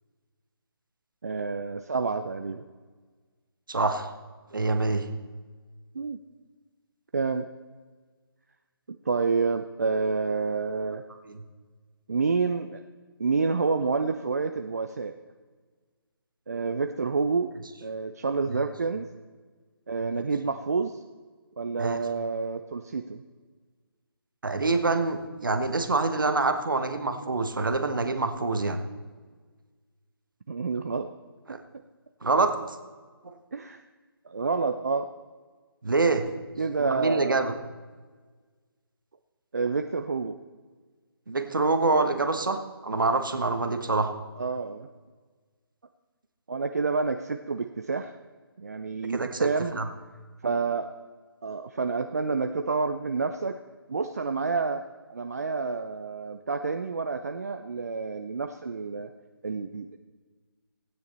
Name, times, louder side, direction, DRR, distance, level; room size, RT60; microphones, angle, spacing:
voice 1, 1.2-2.6 5.9-6.2 7.1-7.5 8.9-11.0 12.1-12.8 13.2-15.1 16.5-17.5 17.8-19.1 19.9-21.0 21.6-23.2 30.5-31.1 33.5-33.8 34.3-35.1 36.6-37.4 39.5-40.4 44.4-44.9 46.5-48.1 48.6-49.9 50.4-50.9 51.4-53.6 53.9-54.8 55.1-59.1 59.4-60.0, right 4 dB, 40° right, 7 dB, 0.5 m, -28 dB
voice 2, 3.7-4.1 4.5-5.1 11.3-11.4 20.1-20.2 21.8-22.0 24.4-28.8 31.5-31.6 32.2-32.8 35.8-36.2 36.8-37.5 41.3-44.1 49.1-49.5 49.8-49.9, right 3 dB, 55° right, 7 dB, 1.3 m, -26 dB
15.5 x 9.6 x 4.2 m, 1.5 s
figure-of-eight pair, 150°, 13 cm